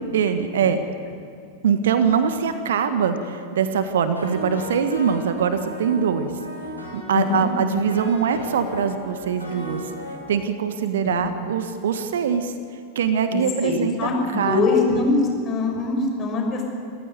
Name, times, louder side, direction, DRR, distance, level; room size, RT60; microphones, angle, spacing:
voice 1, 0.1-0.8 1.6-6.3 6.9-9.8 10.3-12.5 12.9-14.0 14.4-14.7, right 7 dB, 60° right, 9 dB, 1.6 m, -22 dB
sound 1, 4.2-10.2, right 1 dB, 85° right, 7.3 m, -35 dB
voice 2, 7.1-7.5 11.0-11.3 13.3-15.2 15.4-16.7, left 4 dB, 30° left, 1 dB, 6.2 m, -23 dB
27.5 x 15.5 x 9.3 m, 2.2 s
figure-of-eight pair, 90°, 0 cm